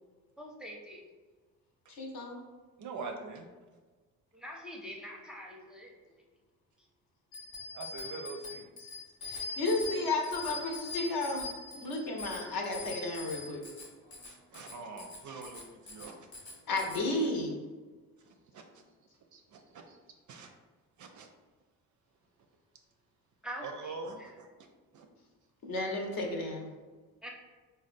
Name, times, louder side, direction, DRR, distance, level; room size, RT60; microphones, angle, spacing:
voice 1, 0.4-1.1 4.3-6.2 23.4-24.3 27.2-27.3, equal, ahead, -1 dB, 0.6 m, -45 dB
voice 2, 1.9-2.4 9.2-11.4 11.7-13.6 16.7-17.6 25.6-26.7, left 2 dB, 50° left, 1 dB, 0.8 m, -33 dB
voice 3, 2.8-3.5 7.7-8.7 14.2-16.3 18.2-18.8 19.3-20.0 20.3-20.5 21.0-21.3 23.6-24.5 24.9-25.1, right 4 dB, 45° right, 4 dB, 0.4 m, -44 dB
Bicycle bell, 7.3-17.0, left 3 dB, 75° left, 1.0 m, -43 dB
4.0 x 2.2 x 2.5 m, 1.4 s
hypercardioid pair, 50°, 43 cm